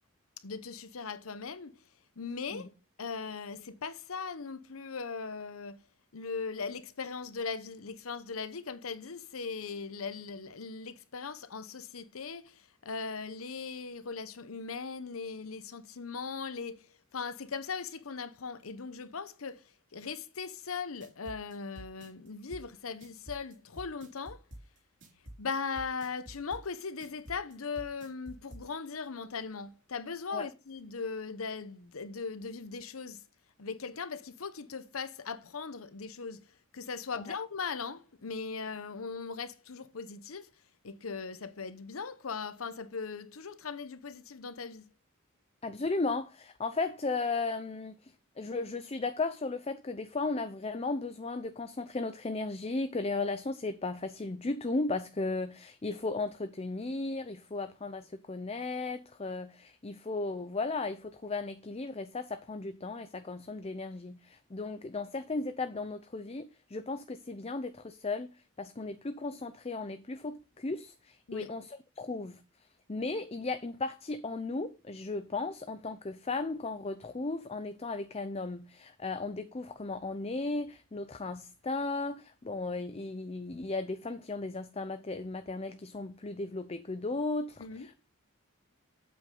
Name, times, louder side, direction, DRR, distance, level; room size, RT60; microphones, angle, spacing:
voice 1, 0.4-1.8 2.2-2.7 3.0-5.8 6.1-24.4 25.4-33.2 33.6-36.5 36.7-40.5 40.8-44.9 71.3-71.5 87.6-87.9, left 5 dB, 85° left, 0.9 m, -39 dB
sound 1, 20.7-28.6, right 1 dB, 60° right, 3.1 m, -48 dB
voice 2, 45.6-48.1 48.4-68.3 68.6-72.4 72.9-87.9, left 3 dB, 30° left, 0.6 m, -35 dB
8.4 x 7.9 x 3.8 m
head